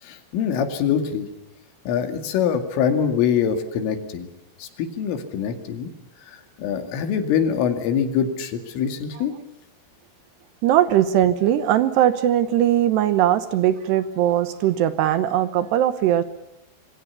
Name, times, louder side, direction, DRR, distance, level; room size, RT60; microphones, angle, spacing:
voice 1, 0.0-1.3 1.9-4.3 4.6-5.9 6.3-9.3, left 8 dB, 85° left, 7 dB, 4.9 m, -24 dB
voice 2, 10.6-16.2, right 11 dB, 70° right, 12 dB, 2.8 m, -20 dB
27.0 x 23.5 x 7.1 m, 0.88 s
omnidirectional pair, 5.6 m